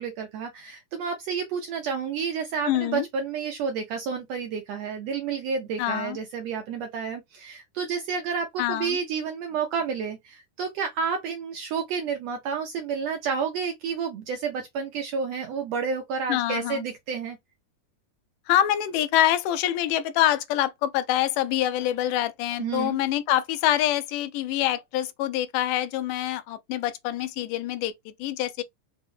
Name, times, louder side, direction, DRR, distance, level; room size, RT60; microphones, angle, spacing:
voice 1, 0.0-17.4 22.6-23.0, right 6 dB, 80° right, 1.5 m, -30 dB
voice 2, 2.7-3.1 5.8-6.2 8.6-9.0 16.3-16.9 18.5-28.6, left 12 dB, 85° left, 2.1 m, -25 dB
5.2 x 2.1 x 3.1 m
omnidirectional pair, 3.6 m